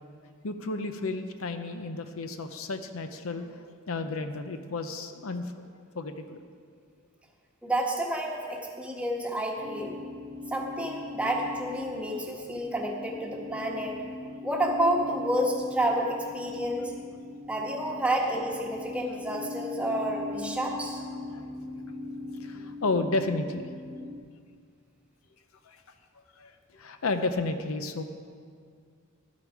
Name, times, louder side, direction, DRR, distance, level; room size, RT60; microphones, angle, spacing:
voice 1, 0.4-5.5 5.9-6.4 18.9-19.0 21.3-21.5 22.4-23.7 25.7-25.8 26.4-28.0, left 3 dB, 75° left, 8 dB, 0.7 m, -32 dB
voice 2, 7.6-10.0 10.5-14.0 14.4-16.9 17.5-21.0, right 1 dB, 5° right, -1 dB, 1.2 m, -30 dB
sound 1, 9.6-24.2, left 3 dB, 15° left, 0.8 m, -40 dB
12.5 x 8.7 x 4.8 m, 2.1 s
head